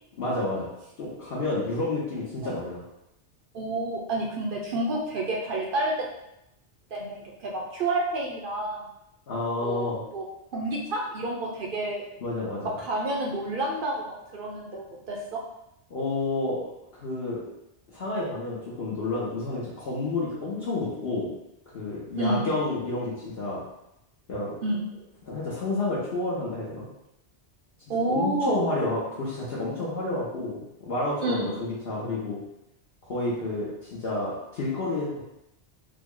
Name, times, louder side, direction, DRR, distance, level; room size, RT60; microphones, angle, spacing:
voice 1, 0.2-0.7 1.0-2.8 9.3-10.0 12.2-12.7 15.9-16.6 17.0-17.4 17.9-21.3 21.7-23.6 24.3-24.5 25.2-26.9 28.0-32.4 33.0-35.2, left 2 dB, 60° left, -8 dB, 0.9 m, -30 dB
voice 2, 3.5-6.1 6.9-8.8 9.6-9.9 10.1-10.2 10.5-12.0 12.8-15.4 22.2-22.5 24.6-24.9 27.9-28.7 31.2-31.4, right 2 dB, 60° right, -1 dB, 0.6 m, -29 dB
3.5 x 2.0 x 3.6 m, 0.85 s
omnidirectional pair, 1.2 m